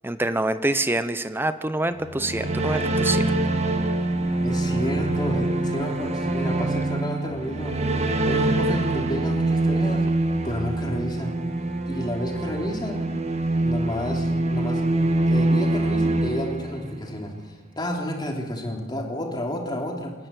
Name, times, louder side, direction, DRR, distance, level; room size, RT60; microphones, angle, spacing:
voice 1, 0.0-3.2, right 2 dB, 10° right, 11 dB, 0.9 m, -26 dB
sound 1, 2.0-17.2, right 2 dB, 35° right, 1.6 m, -24 dB
voice 2, 4.4-7.8 8.3-10.0 10.4-11.4 11.9-13.1 13.6-14.8 15.3-20.1, equal, 20° left, 1 dB, 3.2 m, -30 dB
28.0 x 10.5 x 9.6 m, 1.3 s
head